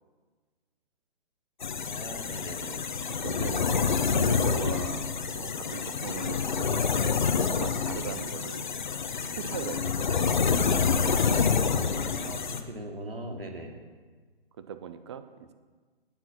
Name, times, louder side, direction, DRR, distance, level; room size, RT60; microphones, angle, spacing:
sound 1, 1.6-12.6, left 6 dB, 50° left, 1.2 m, -27 dB
voice 1, 1.8-2.8 11.9-13.8, right 1 dB, 70° right, 2 dB, 2.6 m, -40 dB
voice 2, 3.1-7.2 7.6-8.7 9.1-10.6 14.6-15.5, right 8 dB, 30° right, 11 dB, 0.8 m, -40 dB
19.0 x 7.6 x 6.0 m, 1.4 s
figure-of-eight pair, 135°, 30 cm